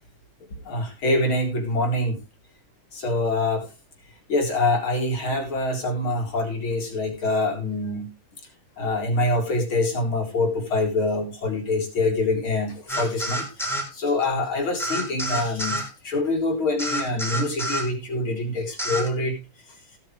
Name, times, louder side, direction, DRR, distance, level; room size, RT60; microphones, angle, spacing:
voice 1, 0.5-2.2 2.9-3.6 4.3-8.1 8.8-19.4, left 2 dB, 85° left, 1 dB, 4.8 m, -25 dB
sound 1, 12.9-13.9 14.8-15.9 16.8-17.9 18.8-19.1, right 1 dB, ahead, 3.6 m, -28 dB
17.5 x 8.9 x 3.3 m, 0.29 s
omnidirectional pair, 2.2 m